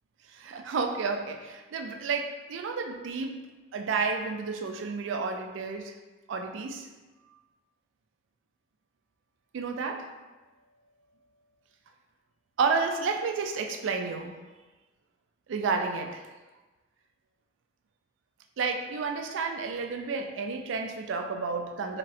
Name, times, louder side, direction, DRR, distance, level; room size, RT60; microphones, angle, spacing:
voice 1, 0.3-3.4 3.7-5.9 6.3-6.9 9.5-10.1 12.6-14.4 15.5-16.3 18.6-22.0, right 4 dB, 80° right, 4 dB, 0.3 m, -31 dB
4.0 x 2.0 x 2.5 m, 1.2 s
head